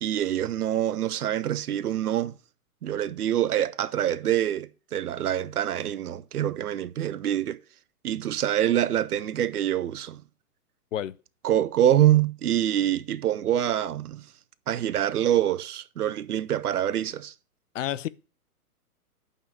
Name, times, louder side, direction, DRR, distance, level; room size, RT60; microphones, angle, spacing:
voice 1, 0.0-2.3 2.8-7.6 8.0-10.2 11.4-14.2 14.7-17.3, right 11 dB, 75° right, 0.8 m, -25 dB
voice 2, 17.7-18.1, left 11 dB, 55° left, 0.5 m, -29 dB
5.8 x 5.6 x 7.0 m
hypercardioid pair, 135°, 45 cm